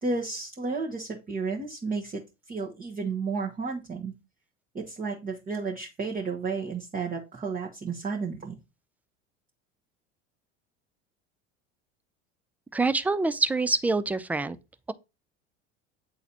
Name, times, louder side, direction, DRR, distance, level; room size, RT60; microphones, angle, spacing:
voice 1, 0.0-4.1 4.7-8.6, right 4 dB, 25° right, 1.2 m, -32 dB
voice 2, 12.7-14.6, right 3 dB, 5° right, 0.3 m, -25 dB
8.5 x 3.9 x 2.8 m
hypercardioid pair, 75°, 36 cm